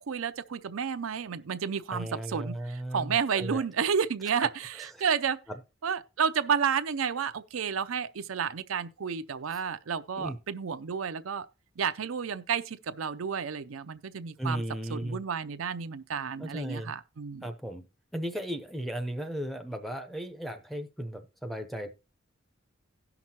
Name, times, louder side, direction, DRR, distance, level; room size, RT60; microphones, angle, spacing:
voice 1, 0.1-5.4 5.8-11.5 11.8-14.6 14.9-17.5, right 6 dB, 85° right, 0.5 m, -31 dB
voice 2, 1.9-3.6 4.8-4.9 9.5-9.6 10.1-10.4 14.4-15.2 16.4-16.9 17.4-17.8 18.1-21.9, right 1 dB, ahead, 0.7 m, -35 dB
17.0 x 5.9 x 2.9 m
head